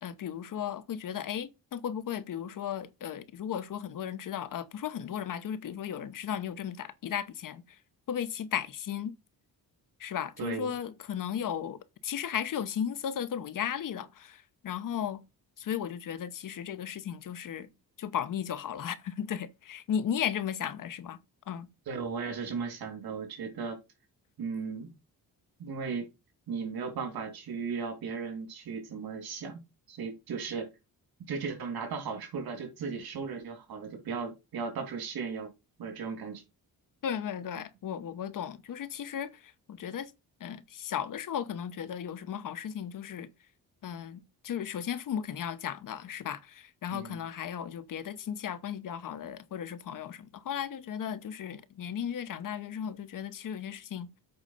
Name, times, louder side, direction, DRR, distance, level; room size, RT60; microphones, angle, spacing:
voice 1, 0.0-7.6 8.1-9.1 10.0-15.2 15.6-17.7 18.0-21.2 21.5-21.7 37.0-40.1 40.4-43.3 43.8-54.1, left 9 dB, 60° left, 0.9 m, -35 dB
voice 2, 10.4-10.7 21.9-23.8 24.4-24.9 25.6-26.1 26.5-29.6 29.9-30.7 31.3-35.5 35.8-36.4 46.9-47.2, right 5 dB, 80° right, 3.0 m, -36 dB
8.0 x 4.8 x 5.5 m
wide cardioid pair, 180°, 37 cm